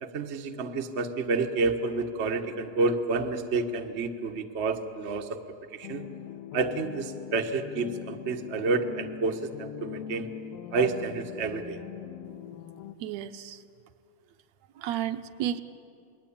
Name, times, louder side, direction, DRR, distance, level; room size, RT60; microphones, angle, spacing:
voice 1, 0.0-5.4 5.7-6.1 6.5-10.3 10.7-11.8, right 3 dB, 50° right, 5 dB, 0.8 m, -29 dB
sound 1, 5.8-12.9, left 10 dB, 70° left, 1.7 m, -41 dB
voice 2, 13.0-13.6 14.8-15.6, right 10 dB, 75° right, 10 dB, 1.9 m, -32 dB
29.0 x 21.0 x 8.7 m, 2.5 s
omnidirectional pair, 3.3 m